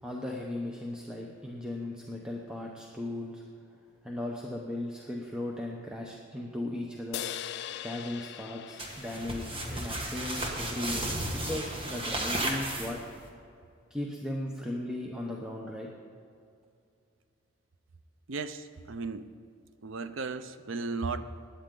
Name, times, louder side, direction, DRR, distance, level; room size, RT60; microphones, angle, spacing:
voice 1, 0.0-3.4 4.0-7.2 7.8-11.1 11.3-13.0 13.9-15.9, left 1 dB, 5° right, -1 dB, 0.8 m, -37 dB
sound 1, 7.1-10.6, left 10 dB, 60° left, 0.3 m, -41 dB
sound 2, 8.8-13.3, right 1 dB, 30° right, 1.5 m, -34 dB
voice 2, 18.3-19.3 19.8-21.3, right 4 dB, 80° right, 11 dB, 0.6 m, -35 dB
16.5 x 10.0 x 3.8 m, 2.4 s
head